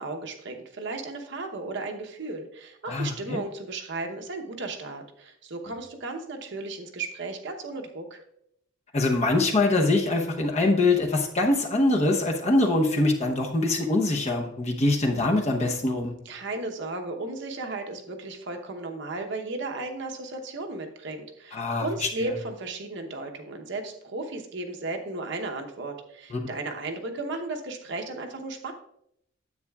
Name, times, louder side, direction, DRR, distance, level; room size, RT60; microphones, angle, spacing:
voice 1, 0.0-8.2 16.2-28.7, right 2 dB, 65° right, 4 dB, 0.9 m, -35 dB
voice 2, 2.9-3.4 8.9-16.1 21.5-22.3 26.3-26.4, left 2 dB, 35° left, 1 dB, 0.9 m, -24 dB
9.7 x 8.0 x 2.3 m, 0.75 s
head